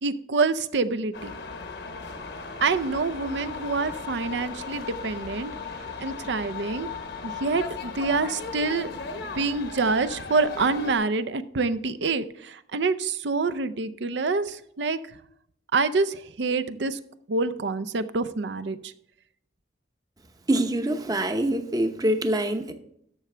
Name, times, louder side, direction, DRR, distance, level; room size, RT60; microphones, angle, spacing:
voice 1, 0.0-1.3 2.6-5.5 6.0-6.9 7.2-8.9 9.4-15.0 15.7-17.0 17.3-18.9, right 4 dB, 75° right, 0.6 m, -26 dB
sound 1, 1.1-11.0, left 4 dB, 70° left, 1.0 m, -37 dB
voice 2, 20.5-22.7, right 1 dB, 20° right, 0.7 m, -25 dB
12.0 x 6.8 x 3.4 m
head